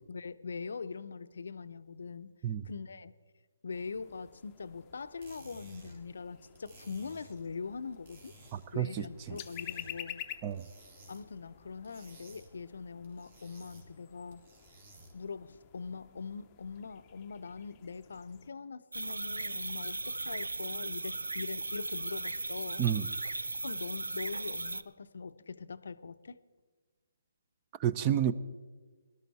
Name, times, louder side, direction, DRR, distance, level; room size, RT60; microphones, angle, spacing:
voice 1, 0.1-2.3 2.6-3.1 3.6-8.3 8.7-10.2 11.1-14.4 15.1-22.9 23.6-26.4, left 5 dB, 65° left, 12 dB, 0.6 m, -42 dB
sound 1, 3.7-18.5, left 12 dB, 25° left, 0.6 m, -51 dB
sound 2, 5.0-15.3, right 2 dB, 50° right, 2.9 m, -57 dB
voice 2, 8.5-9.4 10.4-10.6 22.8-23.1 27.8-28.3, right 10 dB, 25° right, 14 dB, 0.5 m, -30 dB
sound 3, 18.9-24.8, right 2 dB, 85° right, 0.5 m, -37 dB
17.5 x 12.0 x 4.1 m, 1.4 s
figure-of-eight pair, 145°, 0 cm